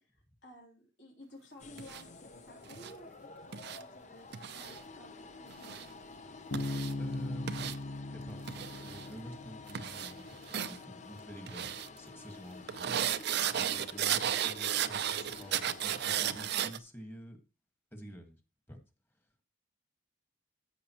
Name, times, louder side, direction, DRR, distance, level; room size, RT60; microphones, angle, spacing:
voice 1, 0.0-5.8, left 1 dB, 60° left, -2 dB, 3.3 m, -55 dB
sound 1, 1.6-16.5, left 3 dB, 40° left, 0.8 m, -50 dB
sound 2, 1.8-2.0 2.7-2.9 3.5-3.8 4.3-4.8 5.5-5.9 6.5-6.9 7.5-7.8 8.5-9.1 9.7-10.1 10.5-10.8 11.5-11.9 12.7-16.8, right 9 dB, 55° right, 0.5 m, -34 dB
Bass guitar, 6.5-10.1, left 2 dB, 85° left, 0.9 m, -39 dB
voice 2, 7.0-7.7 8.1-8.4 8.8-10.4 10.7-13.3 13.6-17.4 17.9-18.4 18.7-18.8, equal, 10° left, 5 dB, 1.6 m, -48 dB
13.5 x 6.5 x 3.0 m, 0.29 s
head